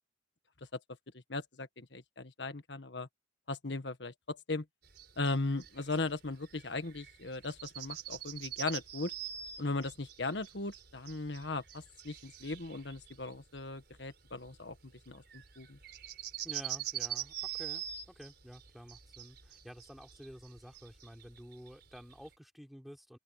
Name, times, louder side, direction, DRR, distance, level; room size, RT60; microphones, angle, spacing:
voice 1, 1.3-3.1 3.5-4.7 5.2-9.1 9.6-15.8, left 3 dB, 65° left, 1.6 m, -38 dB
sound 1, 4.8-22.3, right 10 dB, 55° right, 5.3 m, -44 dB
voice 2, 16.4-23.2, equal, ahead, 3.9 m, -51 dB
head